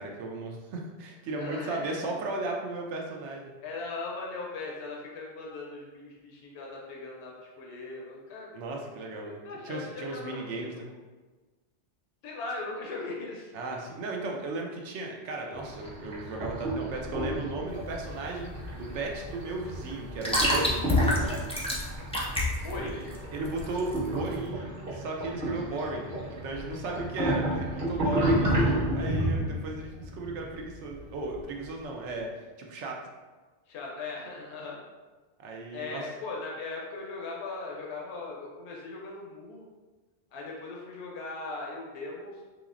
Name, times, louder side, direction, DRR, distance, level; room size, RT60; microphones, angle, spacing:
voice 1, 0.0-3.5 8.5-10.9 13.5-20.9 22.7-23.0 23.3-32.3 32.6-33.0 35.4-36.1, right 2 dB, 80° right, 0 dB, 0.9 m, -35 dB
voice 2, 1.4-2.2 3.6-8.5 9.2-10.9 12.2-13.5 20.9-21.2 22.6-23.1 33.7-34.8 35.7-39.6 40.3-42.4, left 3 dB, 75° left, -2 dB, 0.9 m, -39 dB
sound 1, 15.5-31.6, right 1 dB, 45° right, 1.1 m, -32 dB
sound 2, 17.7-24.4, left 1 dB, 10° left, 0.4 m, -29 dB
4.0 x 2.9 x 2.5 m, 1.3 s
omnidirectional pair, 1.2 m